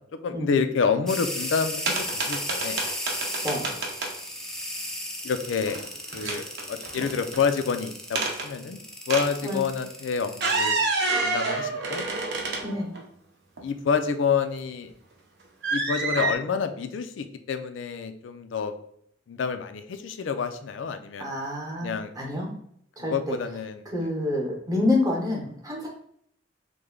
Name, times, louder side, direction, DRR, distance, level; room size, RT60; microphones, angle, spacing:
voice 1, 0.2-2.8 3.4-3.8 5.2-5.8 6.1-8.8 9.1-10.8 11.2-12.1 12.6-12.9 13.6-14.9 15.7-18.7 19.3-21.3 21.8-22.1 23.0-24.1, left 6 dB, 70° left, 8 dB, 0.4 m, -28 dB
sound 1, 1.1-10.9, left 1 dB, 5° left, 0.4 m, -35 dB
sound 2, 1.9-4.1 5.4-5.9 6.1-7.4 8.2-8.5 9.1-9.3 10.3-13.0 13.6-13.7 15.6-16.3, right 3 dB, 60° right, 0.7 m, -28 dB
voice 2, 21.2-22.5 23.0-23.3 23.9-25.9, left 2 dB, 20° right, -2 dB, 0.9 m, -27 dB
3.2 x 2.2 x 3.6 m, 0.69 s
head